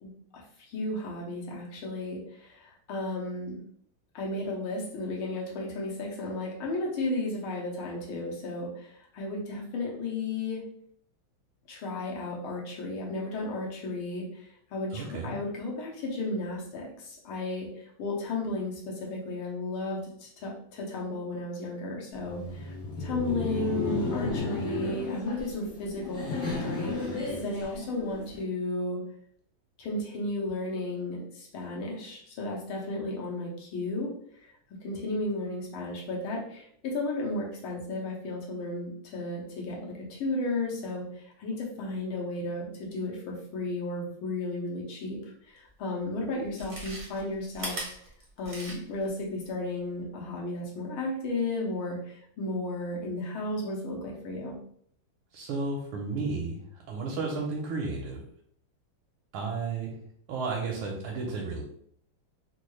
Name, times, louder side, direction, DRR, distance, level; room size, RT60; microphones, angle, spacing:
voice 1, 0.0-3.6 4.2-10.6 11.7-17.7 18.0-22.7 23.0-29.0 29.8-34.1 34.8-45.2 45.5-47.8 48.4-54.6, left 2 dB, 75° left, -2 dB, 1.8 m, -34 dB
voice 2, 14.9-15.3 55.3-56.6 56.9-58.2 59.3-59.9 60.3-61.6, right 4 dB, 85° right, -2 dB, 1.5 m, -32 dB
Laughter, 22.1-28.4, left 3 dB, 50° left, 1.3 m, -34 dB
Chewing mastication, 45.7-45.8 46.4-49.1 49.4-49.5, right 1 dB, 45° right, 0.6 m, -39 dB
4.2 x 2.3 x 3.1 m, 0.65 s
omnidirectional pair, 2.4 m